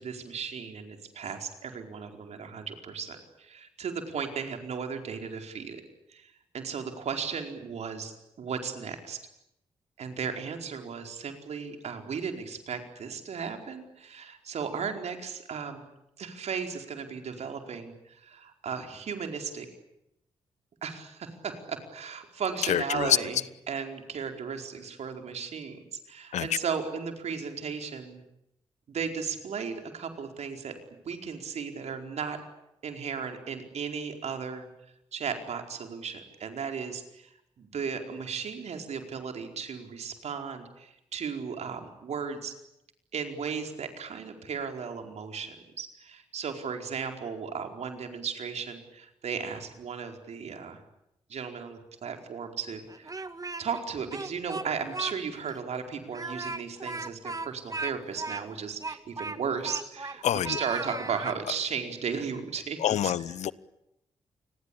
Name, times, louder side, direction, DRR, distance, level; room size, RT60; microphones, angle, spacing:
voice 1, 0.0-5.8 6.1-9.2 10.0-15.9 16.2-19.7 20.8-23.4 23.7-25.8 26.1-28.2 28.9-30.8 31.1-32.4 32.8-34.7 35.1-37.3 37.6-42.5 43.1-50.8 51.3-53.1 53.6-63.1, right 6 dB, 70° right, 4.7 m, -35 dB
voice 2, 22.7-23.2 26.3-26.5 60.2-60.6 62.8-63.5, left 11 dB, 75° left, 0.9 m, -26 dB
Speech, 52.9-53.8 54.1-55.2 55.5-55.6 56.1-60.2 60.4-61.4, right 3 dB, 30° right, 1.9 m, -37 dB
29.0 x 21.0 x 8.7 m
supercardioid pair, 45°, 12 cm